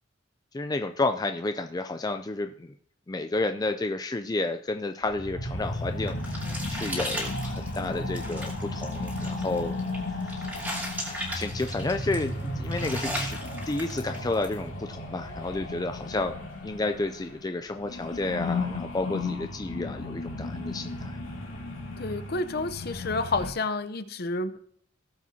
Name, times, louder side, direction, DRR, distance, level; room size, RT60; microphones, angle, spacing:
voice 1, 0.5-2.7 3.1-9.7 10.4-10.5 11.1-13.4 13.7-16.4 16.6-21.2, left 2 dB, 20° left, 7 dB, 0.4 m, -31 dB
sound 1, 5.1-17.5 17.7-23.5, left 2 dB, 90° left, 2.6 m, -34 dB
sound 2, 5.7-14.6, equal, 10° right, 2.5 m, -37 dB
voice 2, 22.0-24.6, left 3 dB, 55° left, 11 dB, 0.7 m, -30 dB
18.0 x 7.4 x 2.8 m, 0.65 s
head